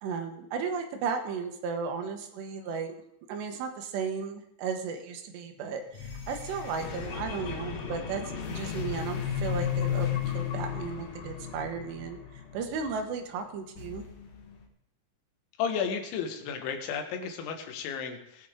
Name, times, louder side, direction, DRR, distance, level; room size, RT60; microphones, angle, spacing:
voice 1, 0.0-2.9 3.3-8.2 8.5-14.0, right 5 dB, 75° right, 5 dB, 3.2 m, -35 dB
sound 1, 5.9-13.0 13.8-14.6, left 8 dB, 65° left, 1.6 m, -34 dB
voice 2, 15.6-18.5, left 6 dB, 85° left, 5 dB, 3.7 m, -33 dB
18.5 x 9.1 x 3.7 m, 0.77 s
omnidirectional pair, 5.2 m